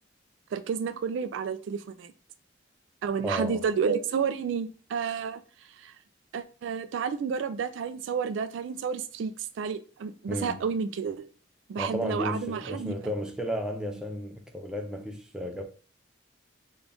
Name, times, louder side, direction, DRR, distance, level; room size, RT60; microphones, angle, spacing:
voice 1, 0.5-2.1 3.0-5.4 5.8-5.9 6.3-9.3 9.6-11.3 11.7-13.0, right 6 dB, 75° right, 0.3 m, -30 dB
voice 2, 3.2-3.6 10.3-10.6 11.8-15.6, equal, 5° right, 0.4 m, -33 dB
3.8 x 2.3 x 3.4 m
head